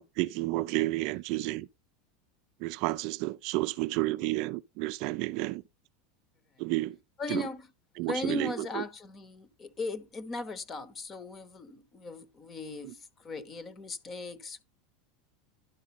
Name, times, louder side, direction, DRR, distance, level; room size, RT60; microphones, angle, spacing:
voice 1, 0.0-1.7 2.6-5.6 6.6-7.0 7.3-7.4 8.0-8.8, right 19 dB, 50° right, 0.5 m, -31 dB
voice 2, 7.2-7.7 8.0-14.6, left 3 dB, 20° left, 1.0 m, -38 dB
11.5 x 4.9 x 4.2 m
supercardioid pair, 160°, 0 cm